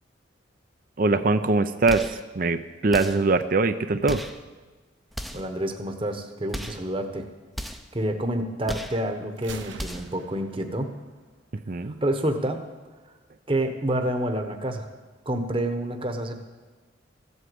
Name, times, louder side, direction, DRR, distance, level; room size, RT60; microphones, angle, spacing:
voice 1, 1.0-4.2 11.7-12.0, right 3 dB, 45° right, 10 dB, 0.5 m, -22 dB
sound 1, 1.9-2.2 2.9-3.3 4.0-4.4 5.1-5.5 6.5-6.9 7.5-7.9 8.6-9.0 9.7-10.2, equal, ahead, 0.6 m, -35 dB
voice 2, 5.3-7.3 7.9-10.9 11.8-12.6 13.5-14.9 15.3-16.4, right 1 dB, 25° right, 6 dB, 1.0 m, -28 dB
Gunshot gunfire, 9.4-11.3, right 4 dB, 75° right, 1.0 m, -45 dB
15.0 x 8.2 x 7.8 m, 1.3 s
head